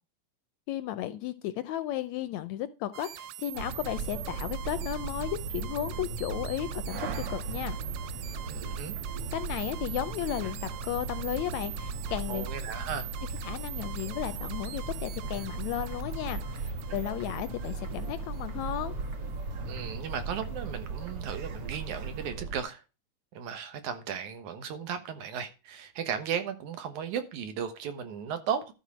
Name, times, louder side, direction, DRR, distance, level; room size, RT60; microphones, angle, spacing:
voice 1, 0.7-7.8 9.3-12.5 13.4-19.0, left 12 dB, 75° left, 1.8 m, -34 dB
sound 1, 2.9-18.8, right 13 dB, 90° right, 2.2 m, -44 dB
sound 2, 3.5-22.6, right 4 dB, 55° right, 1.9 m, -37 dB
sound 3, 7.0-22.3, right 2 dB, 35° right, 1.7 m, -52 dB
voice 2, 8.4-8.9 12.3-13.1 19.6-22.8 23.3-28.7, right 7 dB, 75° right, 2.7 m, -35 dB
12.5 x 4.4 x 6.2 m
omnidirectional pair, 3.6 m